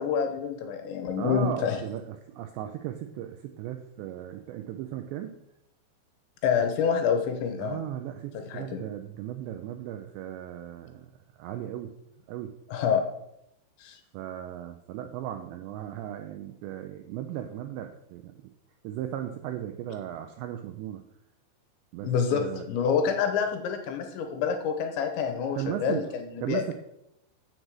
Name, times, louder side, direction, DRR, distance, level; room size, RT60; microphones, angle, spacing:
voice 1, 0.0-1.8 6.4-7.8 8.3-8.8 12.7-13.0 13.8-14.0 22.0-26.7, left 7 dB, 75° left, 5 dB, 3.0 m, -27 dB
voice 2, 1.2-5.4 7.6-11.1 11.4-11.9 12.3-12.5 14.1-18.5 18.8-21.0 21.9-22.7 25.6-26.1 26.4-26.7, right 11 dB, 85° right, 6 dB, 2.5 m, -36 dB
7.9 x 6.7 x 7.4 m, 0.83 s
omnidirectional pair, 5.7 m